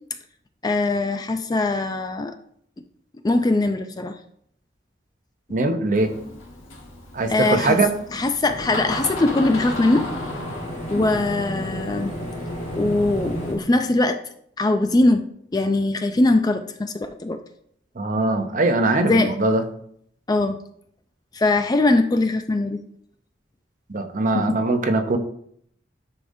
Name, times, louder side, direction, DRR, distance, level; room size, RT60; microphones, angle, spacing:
voice 1, 0.6-2.4 3.2-4.1 7.3-7.8 8.1-10.1 10.9-12.1 12.7-14.2 14.6-15.2 15.5-17.4 19.0-19.3 20.3-20.6 21.3-22.8 24.3-24.6, left 2 dB, 20° left, 7 dB, 0.4 m, -21 dB
voice 2, 5.5-6.1 7.1-7.9 18.0-19.6 23.9-25.2, right 2 dB, 40° right, 6 dB, 0.7 m, -21 dB
Door, 5.9-13.6, left 1 dB, 85° left, 1.5 m, -36 dB
sound 1, 8.5-13.5, equal, 40° left, 2.8 m, -32 dB
9.9 x 5.0 x 2.7 m, 0.66 s
head